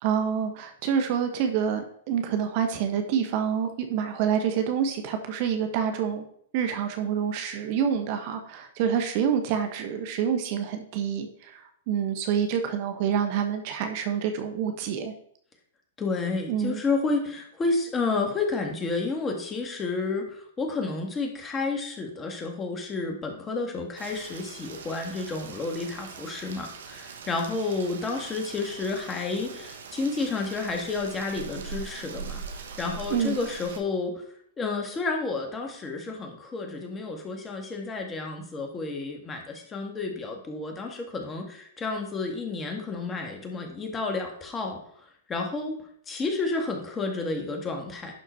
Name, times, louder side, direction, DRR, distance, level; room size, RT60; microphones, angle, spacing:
voice 1, 0.0-6.2 6.5-15.1 16.5-16.8 33.1-33.4, right 8 dB, 50° right, 6 dB, 1.4 m, -27 dB
voice 2, 16.0-32.4 32.8-34.2 34.6-44.8 45.3-48.1, left 3 dB, 20° left, 2 dB, 2.0 m, -31 dB
Rain, 24.0-33.8, right 5 dB, 75° right, 1.3 m, -42 dB
11.0 x 4.6 x 4.6 m, 0.63 s
hypercardioid pair, 120°, 0 cm